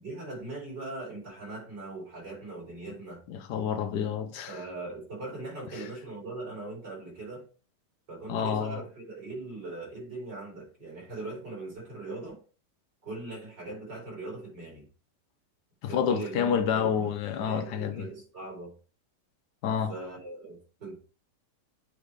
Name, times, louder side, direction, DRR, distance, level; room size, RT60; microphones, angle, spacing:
voice 1, 0.0-3.2 4.5-7.4 8.1-12.4 13.0-14.8 15.9-18.7 19.9-21.0, right 2 dB, 80° right, 5.2 m, -40 dB
voice 2, 3.3-4.6 8.3-8.8 15.8-18.0 19.6-19.9, left 7 dB, 80° left, 1.3 m, -28 dB
8.5 x 3.4 x 4.8 m
omnidirectional pair, 1.8 m